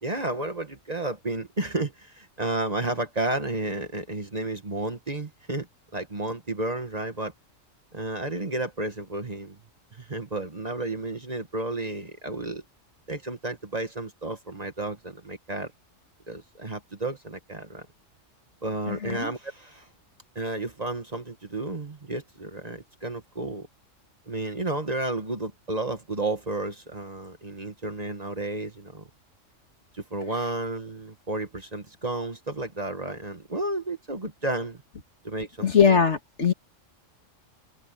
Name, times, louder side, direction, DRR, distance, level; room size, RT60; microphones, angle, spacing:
voice 1, 0.0-5.7 5.9-7.3 7.9-9.6 9.9-12.6 13.1-15.7 16.3-17.9 18.6-19.9 20.4-23.7 24.3-29.0 29.9-34.8 35.2-35.8, right 2 dB, 30° right, 1.7 m, -32 dB
voice 2, 18.9-19.3 35.6-36.5, left 6 dB, 60° left, 2.3 m, -21 dB
omnidirectional pair, 1.3 m